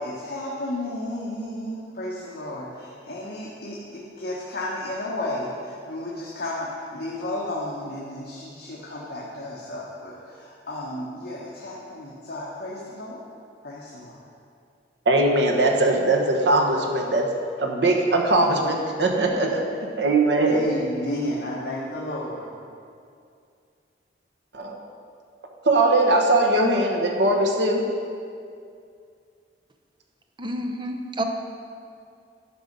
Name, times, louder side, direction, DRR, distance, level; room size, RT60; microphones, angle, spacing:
voice 1, 0.0-13.2 13.6-14.2 20.5-22.5, left 1 dB, 60° left, -6 dB, 1.2 m, -32 dB
voice 2, 15.1-17.3 17.6-19.7 20.0-20.6 24.5-24.8 25.6-27.8, right 2 dB, 80° right, 2 dB, 1.2 m, -20 dB
voice 3, 30.4-31.2, right 1 dB, 30° right, 4 dB, 0.7 m, -29 dB
11.5 x 5.4 x 5.2 m, 2.4 s
head